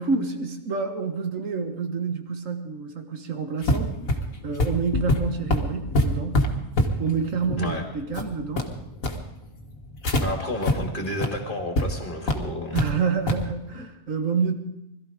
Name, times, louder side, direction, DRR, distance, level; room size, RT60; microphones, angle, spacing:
voice 1, 0.0-4.0 4.4-6.4 7.0-8.7 12.7-14.5, right 5 dB, 65° right, 6 dB, 1.8 m, -28 dB
sound 1, 3.6-10.2 10.6-10.7 11.1-11.3 11.8-11.9 12.3-12.9 13.3-13.5, left 1 dB, 70° left, 2.0 m, -25 dB
voice 2, 10.2-12.8, left 1 dB, 35° left, 2 dB, 2.8 m, -31 dB
21.0 x 13.5 x 5.1 m, 0.86 s
omnidirectional pair, 1.5 m